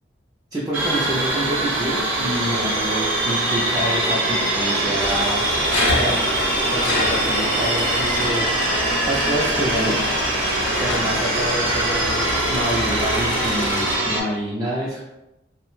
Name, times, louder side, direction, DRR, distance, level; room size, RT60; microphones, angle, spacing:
voice 1, 0.5-6.2 6.7-10.0 10.3-15.0, right 1 dB, 20° right, -6 dB, 0.3 m, -27 dB
sound 1, 0.7-14.2, right 2 dB, 90° right, 0.7 m, -23 dB
sound 2, 5.0-14.0, left 2 dB, 75° left, 0.6 m, -27 dB
2.7 x 2.0 x 3.0 m, 0.92 s
head